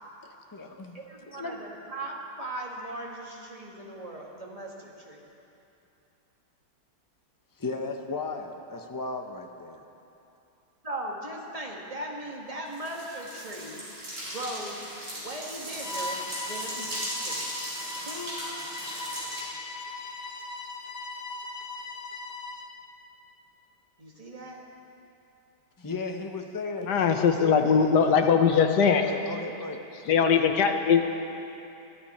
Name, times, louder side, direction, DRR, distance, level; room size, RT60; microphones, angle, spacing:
voice 1, 0.2-1.0 1.3-1.6 7.6-9.8 25.8-28.0 29.0-29.8, left 3 dB, 25° left, 4 dB, 0.4 m, -35 dB
voice 2, 0.9-5.2 10.8-13.9 14.2-14.8 15.1-17.5 18.0-18.4 24.0-24.7, right 1 dB, 20° right, -2 dB, 1.8 m, -38 dB
sound 1, 12.7-19.4, equal, 40° right, 4.7 m, -37 dB
Bowed string instrument, 15.8-22.8, left 3 dB, 45° left, 0.9 m, -39 dB
voice 3, 26.9-29.1 30.1-31.1, left 6 dB, 65° left, 6 dB, 1.4 m, -21 dB
21.5 x 13.5 x 4.4 m, 2.8 s
omnidirectional pair, 2.0 m